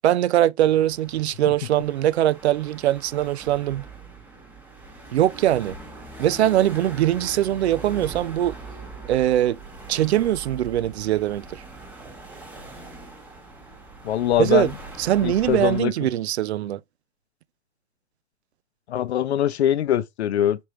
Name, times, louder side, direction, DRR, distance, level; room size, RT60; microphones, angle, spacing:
voice 1, 0.0-3.9 5.1-5.8 6.2-8.6 9.1-9.6 9.9-11.6 14.4-14.7 15.0-16.8, right 12 dB, 70° right, 0.6 m, -22 dB
sound 1, 0.6-15.8, right 2 dB, 5° right, 1.1 m, -41 dB
voice 2, 14.0-14.7 15.2-15.9 18.9-20.6, left 11 dB, 70° left, 0.7 m, -22 dB
5.3 x 3.1 x 3.1 m
hypercardioid pair, 140°, 34 cm